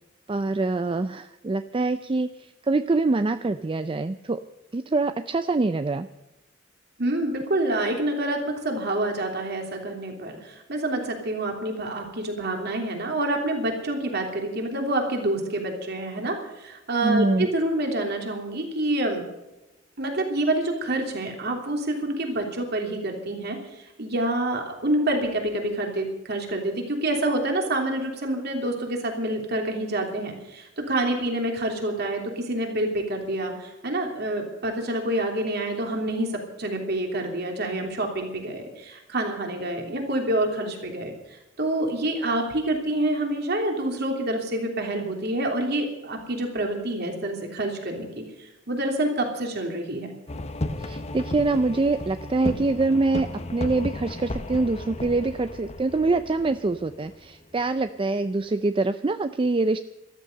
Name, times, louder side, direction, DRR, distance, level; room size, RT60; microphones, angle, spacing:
voice 1, 0.3-2.3 2.7-4.4 4.7-6.1 17.0-17.5 50.8-59.8, right 3 dB, 25° right, 11 dB, 0.4 m, -24 dB
voice 2, 7.0-19.2 20.0-36.3 36.6-50.1, right 1 dB, 55° right, 2 dB, 3.1 m, -27 dB
sound 1, 50.3-57.8, left 1 dB, 35° left, 1.0 m, -34 dB
13.5 x 13.0 x 6.6 m, 1.0 s
head